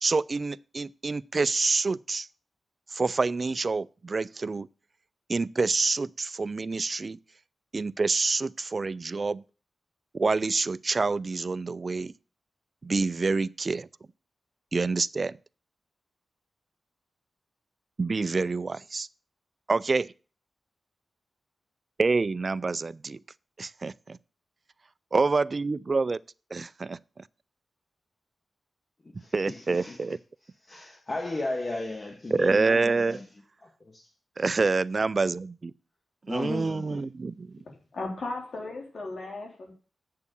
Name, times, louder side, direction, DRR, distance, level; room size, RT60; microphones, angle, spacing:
voice 1, 0.0-2.3 2.9-4.7 5.3-7.2 7.7-9.4 10.1-12.1 12.8-13.9 14.7-15.4 18.0-19.1 19.7-20.1 22.0-23.2 23.6-24.2 25.1-26.2 26.5-27.2 29.1-30.2 32.3-33.2 34.4-35.7 36.3-37.6, right 3 dB, 45° right, 0.4 m, -27 dB
voice 2, 29.0-30.0 30.6-33.3 33.6-34.1 36.3-37.0, left 2 dB, 40° left, 1.6 m, -35 dB
voice 3, 37.7-39.7, left 2 dB, 70° left, 3.6 m, -36 dB
8.3 x 6.8 x 6.9 m
cardioid pair, 65°, 0 cm